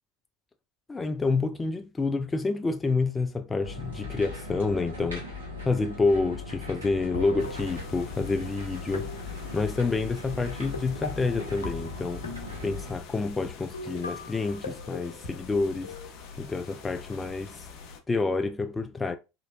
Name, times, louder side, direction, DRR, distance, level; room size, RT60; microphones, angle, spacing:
voice 1, 0.9-5.3 5.6-9.1 9.5-12.3 12.6-16.0 16.4-17.7 18.1-19.2, left 3 dB, 15° left, 0.3 m, -28 dB
sound 1, 3.6-12.9, left 3 dB, 80° right, 1.3 m, -39 dB
sound 2, 7.0-8.4 8.9-9.8 10.7-12.9 13.4-13.5 13.7-16.0, left 3 dB, 70° left, 1.0 m, -40 dB
sound 3, 7.4-18.0, left 5 dB, 50° left, 0.8 m, -45 dB
3.8 x 3.2 x 2.5 m
figure-of-eight pair, 75°, 0 cm